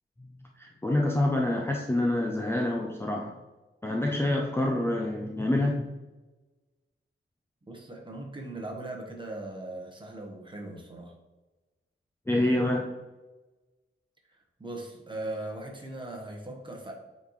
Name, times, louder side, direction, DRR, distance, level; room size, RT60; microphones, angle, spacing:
voice 1, 0.6-3.4 3.8-5.9 12.3-12.9, left 1 dB, 10° left, 0 dB, 0.5 m, -27 dB
voice 2, 7.7-11.1 14.6-16.9, right 2 dB, 25° right, 1 dB, 1.1 m, -39 dB
8.6 x 4.2 x 3.1 m, 1.2 s
wide cardioid pair, 155°, 21 cm